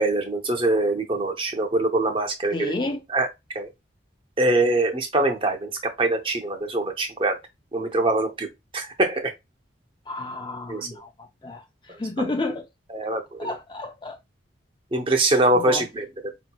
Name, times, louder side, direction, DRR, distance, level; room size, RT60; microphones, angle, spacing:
voice 1, 0.0-2.7 3.1-3.3 3.5-3.7 4.4-5.7 6.0-7.4 7.7-8.5 8.7-9.3 10.7-11.0 12.2-12.3 12.9-13.6 14.9-16.1, right 2 dB, 30° right, 0.7 m, -23 dB
voice 2, 2.5-3.0 10.1-11.1 11.4-11.6 12.0-12.7 13.4-14.2 15.6-15.8, left 2 dB, 25° left, 0.4 m, -30 dB
5.0 x 2.9 x 2.3 m
head